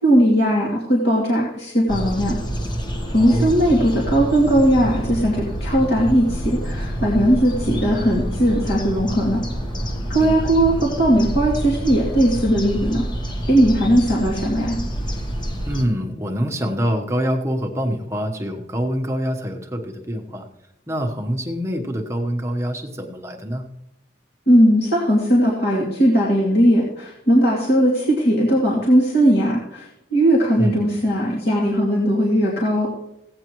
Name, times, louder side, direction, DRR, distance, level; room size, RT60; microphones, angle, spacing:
voice 1, 0.0-2.3 3.1-9.4 10.1-13.0 13.5-14.8 24.5-29.9 30.1-32.9, equal, 55° left, -5 dB, 2.7 m, -18 dB
sound 1, 1.9-15.8, equal, 20° left, 1.1 m, -27 dB
voice 2, 3.2-3.6 10.2-10.5 15.6-20.5 20.9-23.6 30.6-30.9, equal, 15° right, 2 dB, 1.1 m, -25 dB
16.5 x 9.6 x 3.1 m, 0.85 s
head